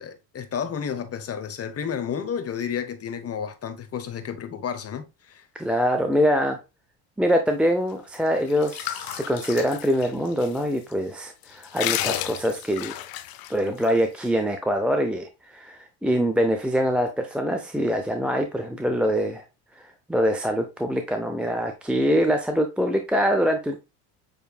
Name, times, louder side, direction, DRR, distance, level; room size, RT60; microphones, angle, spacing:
voice 1, 0.0-5.5, left 7 dB, 30° left, 1.0 m, -31 dB
voice 2, 5.5-6.6 7.2-12.9 13.5-19.4 19.8-19.9 20.1-23.8, equal, ahead, 0.6 m, -24 dB
sound 1, 8.1-10.6 10.9-11.0 11.4-13.9, left 13 dB, 50° left, 0.6 m, -32 dB
6.8 x 3.3 x 2.3 m
hypercardioid pair, 75°, 46 cm